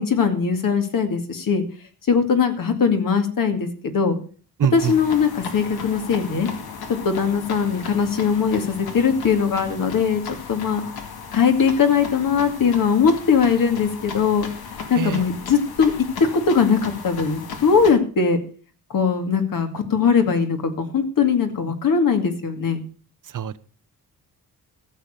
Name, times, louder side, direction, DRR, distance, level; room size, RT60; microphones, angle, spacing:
voice 1, 0.0-1.6 2.1-4.2 4.7-6.5 6.9-10.2 10.5-10.8 11.3-14.5 14.9-15.9 16.3-18.4 18.9-22.8, left 6 dB, 65° left, 6 dB, 2.4 m, -20 dB
voice 2, 4.6-4.9 14.9-15.2 23.2-23.6, right 9 dB, 60° right, 15 dB, 0.8 m, -24 dB
sound 1, 4.8-17.9, left 5 dB, 90° left, 2.1 m, -36 dB
14.5 x 7.2 x 6.6 m, 0.41 s
cardioid pair, 115°, 36 cm